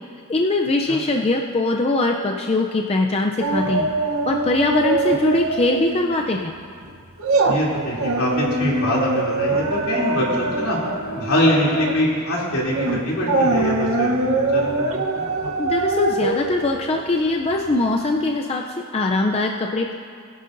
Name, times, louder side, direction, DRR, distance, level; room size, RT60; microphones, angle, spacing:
voice 1, 0.3-3.9 4.3-6.5 15.6-19.9, left 2 dB, 25° left, 2 dB, 0.4 m, -21 dB
sound 1, 3.4-5.8 6.1-6.3 6.8-17.7 18.1-18.2, right 2 dB, 70° right, 0.9 m, -23 dB
voice 2, 7.5-10.8 11.1-15.2, equal, 75° left, -5 dB, 2.9 m, -23 dB
20.5 x 11.0 x 2.6 m, 2.2 s
head